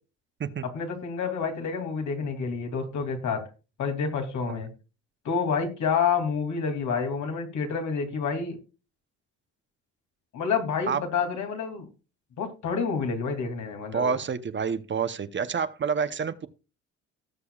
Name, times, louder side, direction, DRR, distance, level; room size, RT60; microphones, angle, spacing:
voice 1, 0.6-3.4 3.8-4.7 5.2-8.6 10.3-11.9 12.4-14.2, left 5 dB, 70° left, 4 dB, 2.8 m, -28 dB
voice 2, 13.9-16.5, right 6 dB, 40° right, 12 dB, 0.9 m, -28 dB
18.5 x 6.8 x 2.4 m, 0.31 s
cardioid pair, 90°, 30 cm